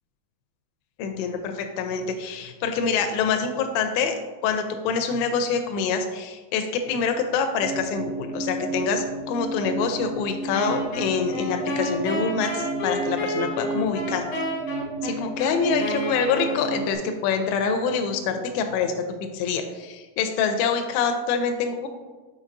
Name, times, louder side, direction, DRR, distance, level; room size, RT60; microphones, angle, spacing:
voice 1, 1.0-4.2 4.4-14.2 15.0-18.9 19.3-21.9, left 5 dB, 85° left, 5 dB, 2.8 m, -25 dB
sound 1, 7.5-16.9, right 3 dB, 80° right, 2.3 m, -32 dB
Wind instrument woodwind instrument, 10.5-17.1, left 1 dB, 65° left, 2.0 m, -31 dB
6.3 x 5.9 x 2.5 m, 1.3 s
omnidirectional pair, 5.0 m